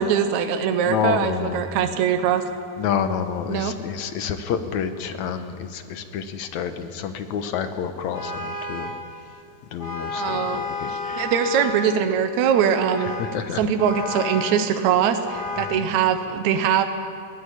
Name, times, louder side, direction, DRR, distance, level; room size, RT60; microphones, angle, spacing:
voice 1, 0.0-2.4 3.5-3.7 10.1-10.6 10.9-13.1 13.6-16.8, right 8 dB, 70° right, 7 dB, 2.3 m, -22 dB
voice 2, 0.8-1.6 2.8-8.9 9.7-11.3 13.2-13.6 15.6-15.9, left 7 dB, 70° left, 8 dB, 2.3 m, -28 dB
Vehicle horn car horn honking, 8.1-9.0 9.8-12.0 12.5-13.3 13.8-14.6 15.2-15.8, left 3 dB, 5° left, 7.1 m, -31 dB
20.5 x 16.0 x 9.9 m, 2.4 s
omnidirectional pair, 3.5 m